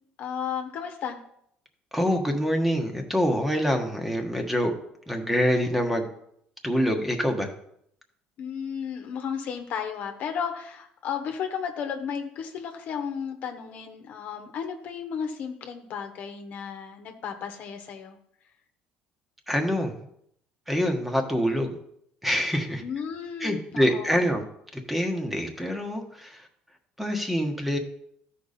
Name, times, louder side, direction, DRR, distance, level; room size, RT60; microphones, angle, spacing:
voice 1, 0.2-1.2 8.4-18.2 22.8-24.2, left 7 dB, 60° left, 5 dB, 1.2 m, -34 dB
voice 2, 1.9-4.7 5.1-6.1 6.6-7.5 19.5-20.0 20.7-21.8 22.2-22.8 23.4-24.4 24.7-26.5 27.0-27.8, equal, 5° right, 4 dB, 1.3 m, -25 dB
13.0 x 5.1 x 4.2 m, 0.72 s
cardioid pair, 110°, 3 cm